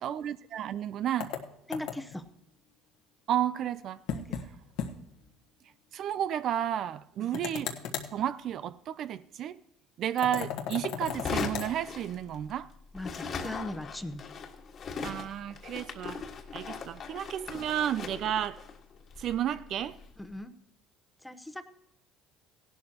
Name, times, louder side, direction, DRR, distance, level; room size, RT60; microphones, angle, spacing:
voice 1, 0.0-1.3 3.3-4.0 5.9-7.7 8.1-9.6 10.0-12.7 15.0-16.2 16.5-18.6 19.2-20.0, right 10 dB, 55° right, 0.4 m, -32 dB
sound 1, 1.2-2.2 4.1-4.5 4.8-4.9 5.2-5.3 7.3-8.1 10.2-11.7, left 8 dB, 75° left, 1.2 m, -36 dB
voice 2, 1.7-2.3 4.1-4.4 7.2-7.5 12.9-14.2 20.2-20.5 21.2-21.6, left 1 dB, 5° left, 0.9 m, -39 dB
sound 2, 11.0-12.7 12.9-20.2, left 5 dB, 45° left, 1.6 m, -39 dB
16.5 x 11.5 x 2.9 m
supercardioid pair, 95°, 0 cm